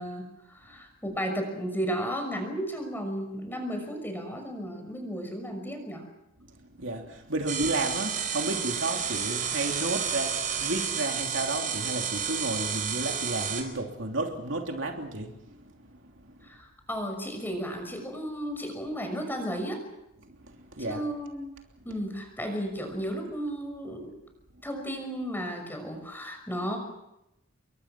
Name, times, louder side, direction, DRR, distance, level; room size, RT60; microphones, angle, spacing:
voice 1, 0.0-6.0 16.4-19.8 20.8-21.5 21.8-24.2 24.6-26.8, equal, 10° left, 6.1 m, -34 dB
voice 2, 6.8-15.6 16.2-16.3 20.3-21.0, right 2 dB, 65° right, 3.1 m, -32 dB
sound 1, 7.5-13.6, right 7 dB, 40° right, 4.5 m, -31 dB
28.5 x 23.0 x 6.1 m
head